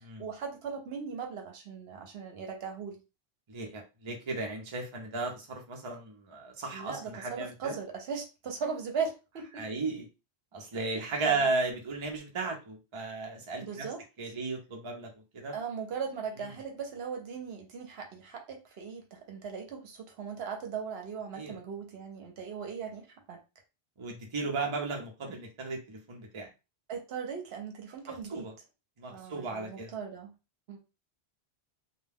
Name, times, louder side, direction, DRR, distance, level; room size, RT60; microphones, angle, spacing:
voice 1, 0.2-3.0 6.7-9.7 11.2-11.4 13.6-14.0 15.5-23.4 26.9-28.5 29.1-30.3 30.7-30.8, right 6 dB, 70° right, 3 dB, 0.9 m, -38 dB
voice 2, 3.5-7.8 9.5-10.1 10.5-13.9 14.2-15.5 21.3-21.6 24.0-26.5 28.1-28.5 29.0-29.9, right 3 dB, 35° right, 1 dB, 0.6 m, -35 dB
2.2 x 2.2 x 3.3 m, 0.28 s
omnidirectional pair, 1.1 m